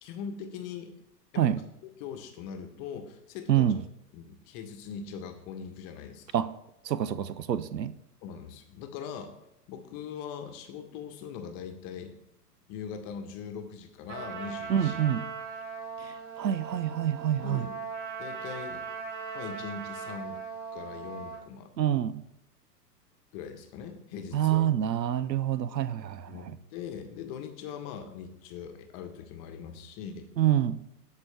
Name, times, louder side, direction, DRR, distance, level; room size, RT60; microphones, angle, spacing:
voice 1, 0.0-0.9 1.4-1.6 2.0-3.7 4.1-6.3 8.2-9.3 9.7-12.1 12.7-15.0 17.4-17.7 18.2-18.8 19.3-20.4 20.7-21.7 23.3-24.7 26.2-30.3, left 7 dB, 35° left, 1.2 m, -41 dB
voice 2, 3.5-3.8 6.3-6.5 6.8-7.9 14.7-15.3 16.0-17.7 21.8-22.2 24.3-26.3 30.4-30.8, right 10 dB, 85° right, 0.6 m, -27 dB
Trumpet, 14.1-21.4, right 5 dB, 45° right, 2.4 m, -39 dB
13.5 x 4.6 x 3.4 m
figure-of-eight pair, 105°, 49 cm